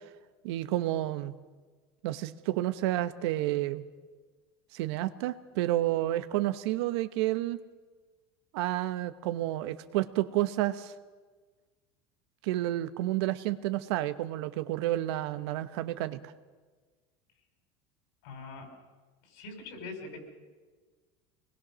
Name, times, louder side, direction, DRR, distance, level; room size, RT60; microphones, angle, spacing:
voice 1, 0.4-1.3 2.0-3.8 4.7-7.6 8.5-10.9 12.4-16.3, right 15 dB, 75° right, 12 dB, 1.1 m, -30 dB
voice 2, 18.2-18.7 19.3-20.2, left 3 dB, 75° left, 4 dB, 5.8 m, -42 dB
24.5 x 20.0 x 6.3 m, 1.4 s
supercardioid pair, 115°, 14 cm